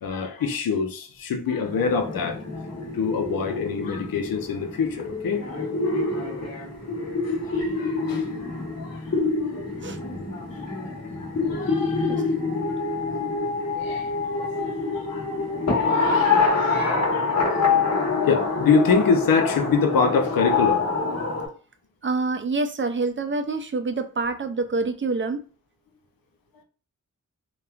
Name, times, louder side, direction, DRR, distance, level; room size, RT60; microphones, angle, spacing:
voice 1, 0.0-2.4 2.9-5.6 7.2-8.3 8.8-9.6 10.5-12.3 13.7-15.3 15.5-17.8 18.3-20.8, left 5 dB, 80° left, 0.6 m, -26 dB
sound 1, 1.6-21.5, left 4 dB, 50° left, 1.1 m, -26 dB
voice 2, 22.0-25.4, right 3 dB, 35° right, 0.5 m, -26 dB
3.0 x 2.1 x 2.4 m
cardioid pair, 40°, 34 cm